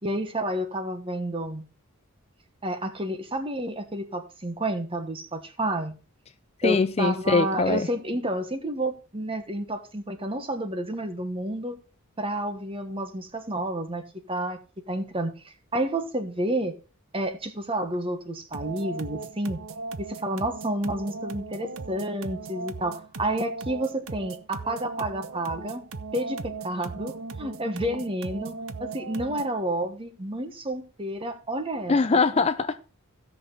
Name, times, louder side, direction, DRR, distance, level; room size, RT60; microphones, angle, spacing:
voice 1, 0.0-1.6 2.6-6.0 6.6-11.8 12.2-14.6 14.9-16.8 17.1-19.6 20.0-25.8 26.1-28.5 28.8-32.0, right 1 dB, 25° right, 1.2 m, -30 dB
voice 2, 6.6-7.9 31.9-32.8, left 4 dB, 30° left, 0.4 m, -22 dB
sound 1, 18.5-29.6, right 4 dB, 65° right, 0.8 m, -38 dB
16.5 x 6.0 x 3.8 m
head